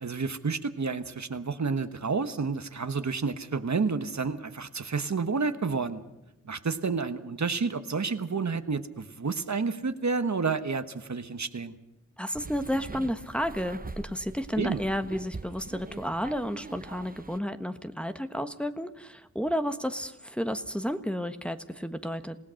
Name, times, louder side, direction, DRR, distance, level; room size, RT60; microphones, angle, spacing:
voice 1, 0.0-6.0 6.4-11.7 14.6-14.8, right 4 dB, 60° right, 10 dB, 1.3 m, -30 dB
voice 2, 12.2-22.4, equal, 5° left, 8 dB, 1.3 m, -32 dB
sound 1, 12.3-17.4, right 3 dB, 30° right, 0.9 m, -43 dB
27.5 x 17.0 x 6.4 m, 0.94 s
wide cardioid pair, 50°, 31 cm